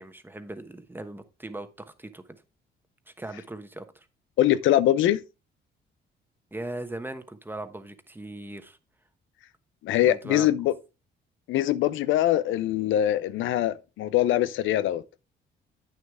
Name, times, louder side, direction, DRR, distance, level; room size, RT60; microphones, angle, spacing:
voice 1, 0.0-1.7 2.0-2.4 3.1-4.1 6.5-8.8 10.1-10.5, right 2 dB, 10° right, 1.1 m, -39 dB
voice 2, 4.4-5.2 9.8-10.7 11.5-15.0, left 12 dB, 80° left, 0.5 m, -23 dB
8.9 x 6.5 x 3.6 m
cardioid pair, 90°, 20 cm